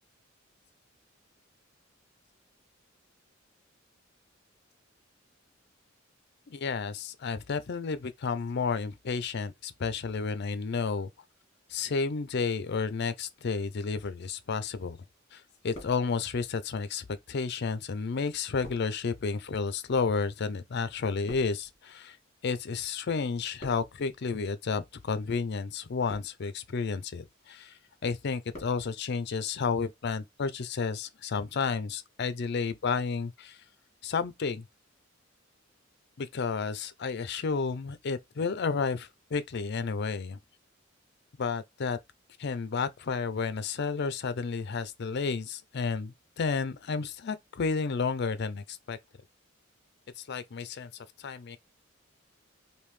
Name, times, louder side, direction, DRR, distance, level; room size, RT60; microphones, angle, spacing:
voice 1, 6.5-11.1 11.7-15.0 15.3-22.2 22.4-27.7 28.0-33.6 34.0-34.6 36.2-40.4 41.4-42.0 42.4-49.0 50.3-50.9 51.2-51.6, left 5 dB, 55° left, 0.5 m, -31 dB
sound 1, 14.6-15.2 15.5-16.5 17.2-22.9 23.1-24.1 24.8-25.1 25.8-26.6 27.1-27.5 27.9-28.8 29.1-29.2, left 1 dB, 35° left, 1.6 m, -51 dB
3.5 x 2.7 x 3.1 m
head